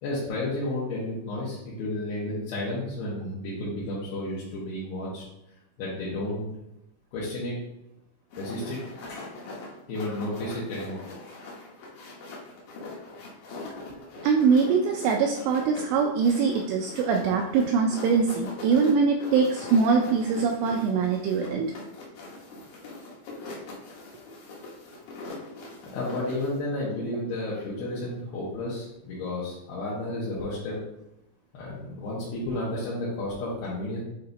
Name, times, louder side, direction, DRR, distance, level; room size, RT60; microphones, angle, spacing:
voice 1, 0.0-5.2 5.8-6.5 7.1-7.6 8.4-8.8 9.0-9.3 9.9-11.0 25.8-30.8 31.5-34.0, left 1 dB, 70° left, -8 dB, 2.6 m, -32 dB
sound 1, 8.3-26.6, left 2 dB, 85° left, 1.7 m, -42 dB
voice 2, 14.2-21.7, right 5 dB, 85° right, 2 dB, 2.5 m, -23 dB
8.5 x 2.8 x 3.9 m, 0.87 s
omnidirectional pair, 5.4 m